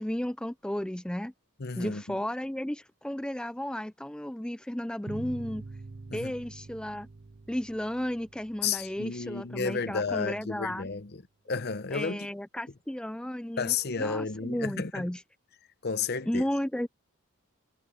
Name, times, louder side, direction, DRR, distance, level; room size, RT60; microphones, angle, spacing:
voice 1, 0.0-1.3 1.8-5.6 6.1-7.1 7.5-10.9 11.9-15.2 16.2-16.9, left 1 dB, 5° left, 0.4 m, -34 dB
voice 2, 1.6-2.2 6.1-6.3 8.6-11.2 11.5-12.3 13.6-15.1 15.8-16.4, left 5 dB, 50° left, 0.8 m, -32 dB
sound 1, 5.1-10.2, right 3 dB, 40° right, 0.6 m, -46 dB
head